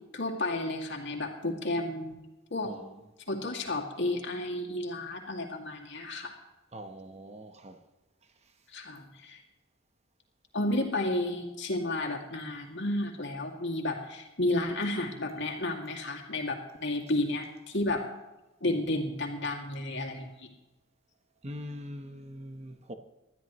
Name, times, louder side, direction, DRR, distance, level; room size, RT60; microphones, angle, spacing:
voice 1, 0.1-2.2 2.5-2.7 3.3-6.3 8.7-9.4 10.5-18.0 18.6-20.5, left 2 dB, 60° left, 2.3 m, -32 dB
voice 2, 6.7-7.8 21.4-22.9, equal, 30° right, 0.9 m, -42 dB
20.5 x 12.5 x 3.1 m
head